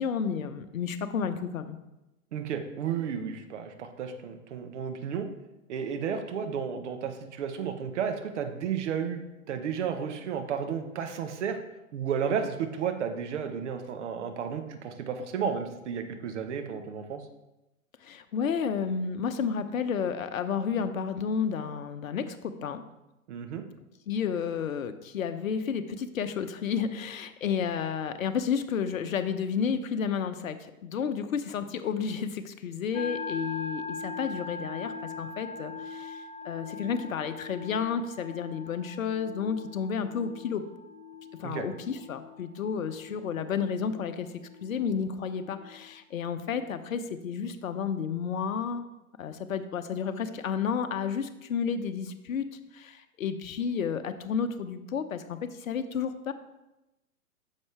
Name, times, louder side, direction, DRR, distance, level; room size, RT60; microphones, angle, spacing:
voice 1, 0.0-1.8 18.0-22.8 24.1-40.6 41.4-48.8 49.2-56.3, left 6 dB, 65° left, 9 dB, 0.8 m, -31 dB
voice 2, 2.3-5.3 5.7-11.6 11.9-17.2 23.3-23.6 41.4-41.7, right 7 dB, 55° right, 7 dB, 1.1 m, -32 dB
sound 1, 32.9-46.8, left 4 dB, 10° left, 0.5 m, -42 dB
9.5 x 6.5 x 3.3 m, 0.96 s
figure-of-eight pair, 115°, 43 cm